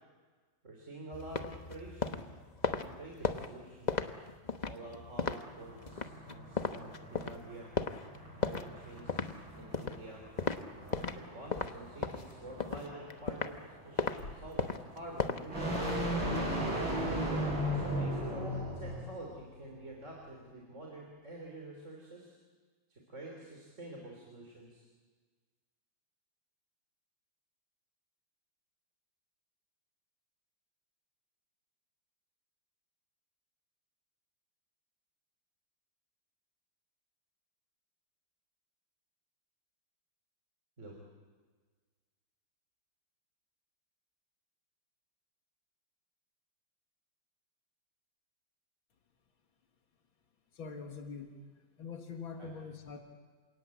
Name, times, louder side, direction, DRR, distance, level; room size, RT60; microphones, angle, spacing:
voice 1, 0.6-2.3 2.7-4.0 4.7-7.7 8.4-9.3 9.5-10.2 10.8-13.6 13.8-16.7 17.7-22.3 22.9-24.9 40.8-41.0 52.4-52.6, right 2 dB, 35° right, -1 dB, 3.7 m, -48 dB
sound 1, 1.1-11.2 11.5-13.6 14.0-14.2 14.6-16.4, left 4 dB, 35° left, 0.7 m, -36 dB
sound 2, 5.6-19.1, equal, 70° right, 8.8 m, -37 dB
sound 3, 14.2-14.7 15.2-15.3 15.8-20.4, left 2 dB, 55° left, 4.7 m, -51 dB
voice 2, 50.6-51.4 51.8-53.0, left 5 dB, 85° left, 4 dB, 2.5 m, -43 dB
28.5 x 18.0 x 8.5 m, 1.4 s
omnidirectional pair, 2.1 m